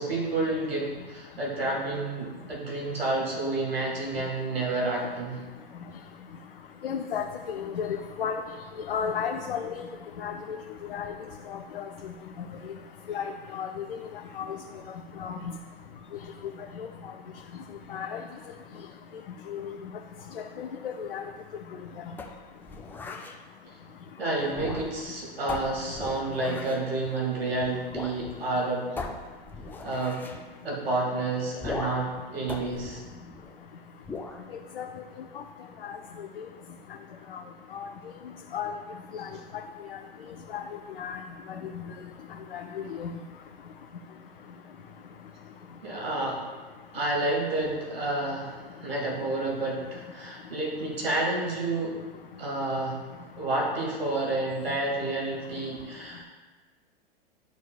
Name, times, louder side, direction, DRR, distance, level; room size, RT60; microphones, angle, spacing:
voice 1, 0.0-5.4 24.2-28.9 29.8-30.2 30.6-33.0 45.8-46.4 46.9-52.0 52.4-53.0 53.4-56.2, right 2 dB, 80° right, -3 dB, 1.9 m, -30 dB
voice 2, 6.8-7.2 7.5-8.4 8.9-9.7 10.2-10.6 10.9-11.1 11.7-11.8 13.1-13.2 13.5-13.8 14.4-14.5 15.2-15.3 16.8-16.9 17.9-18.2 19.5-19.6 20.6-21.2 34.8-34.9 35.8-36.0 37.7-37.8 38.5-38.7 39.1-39.3 39.9-40.0 40.5-40.6 41.0-41.2 42.5-42.6 42.9-43.1, left 7 dB, 70° left, 3 dB, 0.6 m, -32 dB
sound 1, 22.2-23.4 24.5-25.1 25.5-26.9 27.9-28.2 28.5-28.6 29.0-30.4 31.6-32.1 32.5-33.6 34.0-34.4, left 3 dB, 5° left, 0.4 m, -38 dB
11.5 x 4.6 x 2.3 m, 1.4 s
figure-of-eight pair, 100°, 29 cm